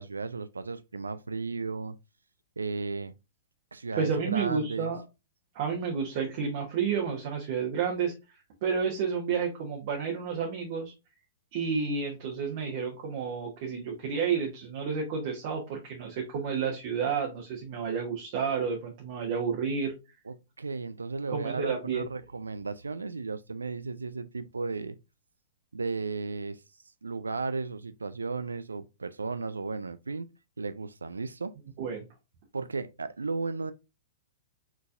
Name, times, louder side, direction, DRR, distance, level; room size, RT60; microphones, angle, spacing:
voice 1, 0.0-2.0 2.6-3.1 3.7-4.9 20.3-25.0 25.7-26.6 27.0-30.3 30.6-31.5 32.5-33.7, right 4 dB, 75° right, 0.3 m, -34 dB
voice 2, 4.0-5.0 5.5-8.1 8.6-10.9 11.5-19.9 21.3-22.0 31.8-32.1, right 6 dB, 45° right, 1.1 m, -30 dB
4.7 x 3.9 x 2.5 m
figure-of-eight pair, 105°, 0 cm